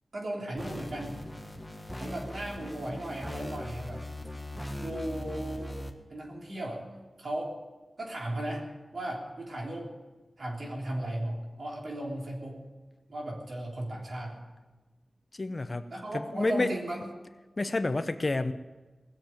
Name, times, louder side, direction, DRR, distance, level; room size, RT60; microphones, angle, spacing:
voice 1, 0.1-1.2 2.0-4.0 4.8-5.8 6.1-6.8 7.2-7.5 8.0-8.7 8.9-9.9 10.4-12.6 13.1-14.4 15.9-17.0, right 1 dB, 65° right, -1 dB, 3.5 m, -36 dB
sound 1, 0.6-5.9, left 1 dB, 10° left, 1.4 m, -40 dB
voice 2, 15.3-16.7 17.6-18.5, left 2 dB, 35° left, 10 dB, 0.7 m, -30 dB
19.0 x 7.5 x 9.0 m, 1.2 s
wide cardioid pair, 100°, 0 cm